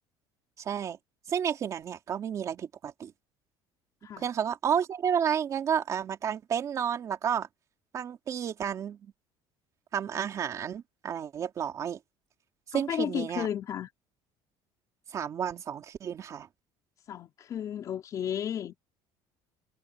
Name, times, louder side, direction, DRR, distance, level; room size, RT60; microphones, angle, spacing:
voice 1, 0.6-1.0 1.3-3.1 4.2-7.5 7.9-9.1 9.9-12.0 12.7-13.5 15.1-16.5, right 8 dB, 30° right, 2.8 m, -31 dB
voice 2, 12.7-13.9 17.1-18.7, left 9 dB, 35° left, 4.4 m, -33 dB
cardioid pair, 175°, 10 cm